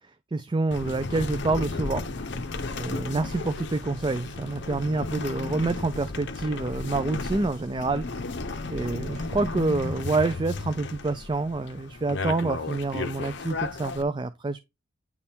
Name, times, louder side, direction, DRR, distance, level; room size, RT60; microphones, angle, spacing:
voice 1, 0.3-2.0 2.7-8.0 8.7-14.6, right 3 dB, 25° right, 0.4 m, -27 dB
sound 1, 0.7-14.0, left 3 dB, 60° left, 0.7 m, -34 dB
9.6 x 3.5 x 4.3 m
head